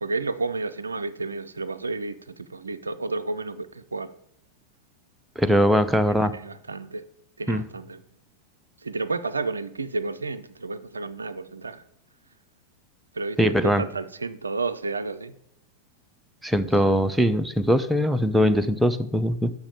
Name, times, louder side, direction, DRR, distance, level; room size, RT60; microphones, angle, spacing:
voice 1, 0.0-4.1 6.1-7.0 7.4-8.0 8.8-11.8 13.1-15.3, right 3 dB, 75° right, 14 dB, 0.4 m, -31 dB
voice 2, 5.4-6.3 7.5-7.6 13.4-13.8 16.4-19.5, equal, 5° right, 10 dB, 0.4 m, -21 dB
6.4 x 5.0 x 6.7 m, 0.75 s
figure-of-eight pair, 90°, 0 cm